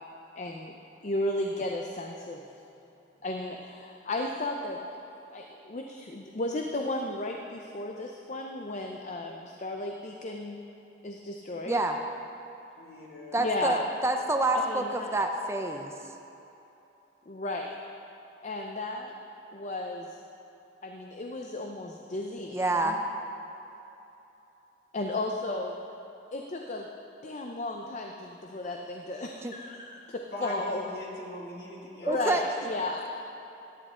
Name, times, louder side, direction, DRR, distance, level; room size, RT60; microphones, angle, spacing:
voice 1, 0.4-0.7 1.0-2.4 3.2-4.8 5.3-10.6 11.0-11.8 13.4-13.9 14.7-15.1 17.3-17.7 18.4-19.1 19.5-20.1 20.8-22.9 24.9-25.8 26.3-26.8 27.2-30.8 32.0-33.2, left 2 dB, 40° left, 2 dB, 0.6 m, -34 dB
voice 2, 11.6-12.0 13.3-15.9 22.5-23.0 29.4-29.5 32.1-32.4, right 2 dB, 15° right, 4 dB, 0.5 m, -27 dB
voice 3, 12.8-13.5 30.3-32.3, left 1 dB, 60° left, -4 dB, 2.3 m, -41 dB
14.5 x 10.5 x 3.7 m, 3.0 s
head